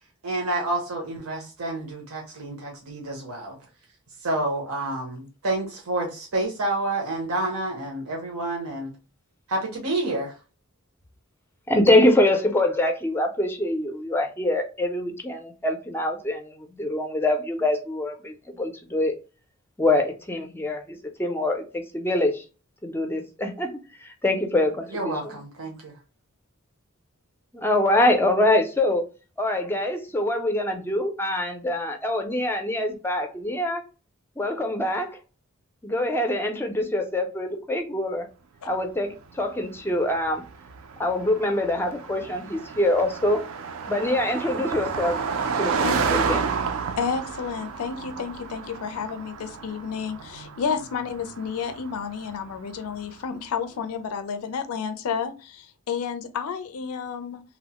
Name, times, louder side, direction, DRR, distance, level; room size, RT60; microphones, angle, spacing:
voice 1, 0.2-3.6 4.2-8.9 9.5-10.3 24.9-25.9, right 2 dB, 90° right, 0.8 m, -29 dB
voice 2, 11.7-19.1 19.8-22.4 22.8-25.3 27.5-29.0 29.4-33.8 34.4-35.2 35.8-38.3 38.6-40.4 41.0-43.4 43.9-45.2 45.6-46.5, left 1 dB, 10° left, 0.4 m, -24 dB
Car passing by, 39.4-53.1, right 5 dB, 65° right, 0.4 m, -31 dB
voice 3, 47.0-57.4, left 6 dB, 90° left, 0.4 m, -31 dB
2.9 x 2.0 x 2.8 m
head